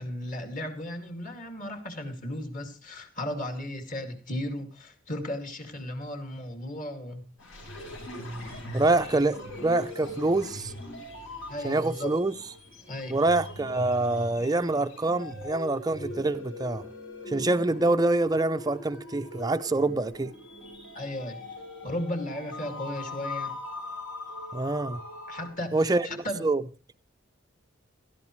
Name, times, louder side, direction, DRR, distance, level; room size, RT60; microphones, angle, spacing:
voice 1, 0.0-7.2 11.5-12.1 12.9-13.2 17.8-17.9 20.9-21.4 21.8-23.5 25.3-26.5, left 1 dB, 40° left, 2.4 m, -35 dB
sound 1, 7.4-25.5, left 1 dB, 75° left, 7.4 m, -40 dB
voice 2, 8.7-10.7 11.6-12.3 13.1-16.9 17.3-20.3 24.5-25.0 25.7-26.1 26.4-26.6, right 2 dB, 20° right, 0.5 m, -25 dB
18.0 x 13.0 x 3.2 m
head